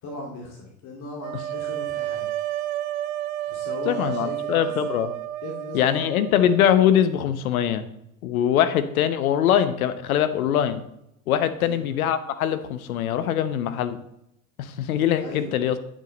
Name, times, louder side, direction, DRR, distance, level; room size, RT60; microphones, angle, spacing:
voice 1, 0.0-2.3 3.5-4.7 5.4-6.5 11.6-11.8 15.2-15.5, left 2 dB, 45° left, -2 dB, 2.3 m, -38 dB
sound 1, 1.2-7.1, right 12 dB, 65° right, 0.7 m, -31 dB
voice 2, 3.9-5.1 5.7-7.9 8.2-10.8 11.3-14.0 14.6-15.8, left 10 dB, 75° left, 12 dB, 0.9 m, -22 dB
9.6 x 6.3 x 3.9 m, 0.82 s
hypercardioid pair, 95°, 43 cm